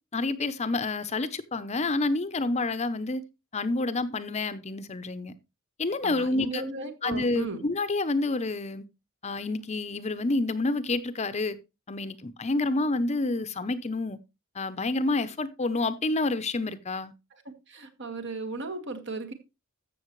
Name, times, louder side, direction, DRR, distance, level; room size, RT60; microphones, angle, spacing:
voice 1, 0.1-3.2 3.5-5.3 5.8-6.6 7.0-8.8 9.2-11.6 11.9-14.2 14.5-17.1, left 2 dB, 30° left, 0.7 m, -28 dB
voice 2, 6.0-7.7 17.3-17.4 17.7-19.3, right 3 dB, 60° right, 1.7 m, -36 dB
14.0 x 6.6 x 3.1 m
head